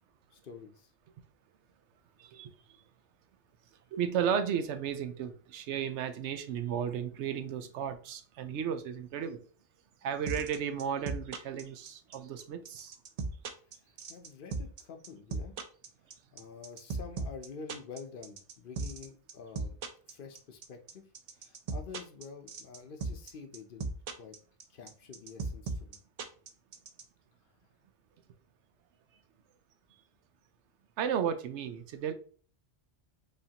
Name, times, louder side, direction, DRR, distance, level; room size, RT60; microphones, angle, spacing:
voice 1, 0.3-0.9 14.1-15.5 16.3-19.8 20.1-21.1 21.4-23.9 24.2-24.3 24.7-26.0, left 5 dB, 60° left, 0.7 m, -48 dB
voice 2, 2.2-2.5 3.9-9.4 10.0-12.9 31.0-32.1, right 8 dB, 85° right, 0.9 m, -34 dB
sound 1, 10.3-27.0, right 3 dB, 55° right, 0.4 m, -36 dB
5.0 x 2.7 x 2.8 m
omnidirectional pair, 1.1 m